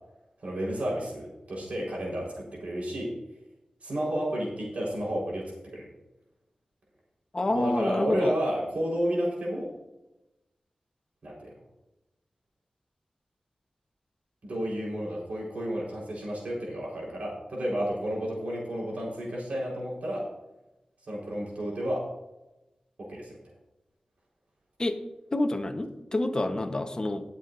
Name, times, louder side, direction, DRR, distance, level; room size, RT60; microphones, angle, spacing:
voice 1, 0.4-3.1 3.8-5.9 7.5-9.7 11.2-11.5 14.4-20.3 21.1-22.1 23.0-23.4, equal, 90° right, -3 dB, 4.4 m, -31 dB
voice 2, 7.3-8.3 24.8-25.0 25.3-27.2, left 2 dB, 35° left, 6 dB, 1.1 m, -28 dB
20.0 x 7.3 x 2.7 m, 0.98 s
wide cardioid pair, 95°, 2 cm